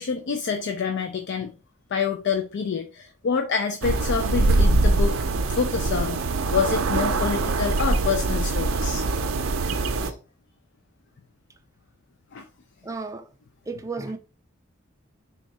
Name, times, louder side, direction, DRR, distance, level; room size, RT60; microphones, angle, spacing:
voice 1, 0.0-1.5 1.9-5.2 5.5-9.0 10.0-10.1 12.3-12.5, left 5 dB, 60° left, 0.4 m, -27 dB
sound 1, 3.8-10.1, right 3 dB, 75° right, 0.5 m, -23 dB
voice 2, 12.8-13.3 13.7-14.2, right 3 dB, 15° right, 0.3 m, -33 dB
3.6 x 2.3 x 4.1 m
head